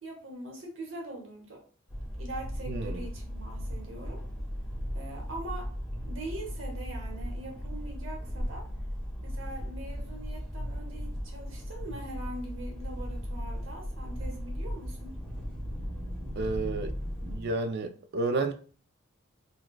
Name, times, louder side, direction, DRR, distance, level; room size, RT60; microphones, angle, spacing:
voice 1, 0.0-1.6 2.2-4.2 4.9-5.7 6.0-8.7 9.2-15.2, right 1 dB, 70° right, 0.9 m, -42 dB
sound 1, 1.9-17.5, equal, 55° left, 1.2 m, -51 dB
sound 2, 1.9-17.4, equal, ahead, 0.9 m, -37 dB
voice 2, 2.7-3.1 16.4-16.9 17.2-18.5, right 3 dB, 50° right, 0.3 m, -31 dB
4.3 x 2.2 x 2.2 m
head